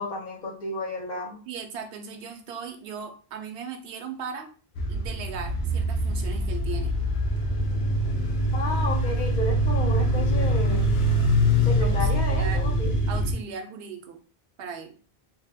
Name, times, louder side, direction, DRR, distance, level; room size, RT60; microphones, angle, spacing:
voice 1, 0.0-1.4 8.5-10.9 11.6-12.9, left 1 dB, 50° left, 0 dB, 0.9 m, -32 dB
voice 2, 1.5-4.5 4.9-6.9 11.8-12.6 13.1-14.2 14.6-14.9, right 6 dB, 75° right, 4 dB, 0.8 m, -37 dB
sound 1, 4.8-13.3, equal, 75° left, 0.9 m, -24 dB
2.8 x 2.1 x 3.4 m, 0.39 s
omnidirectional pair, 1.1 m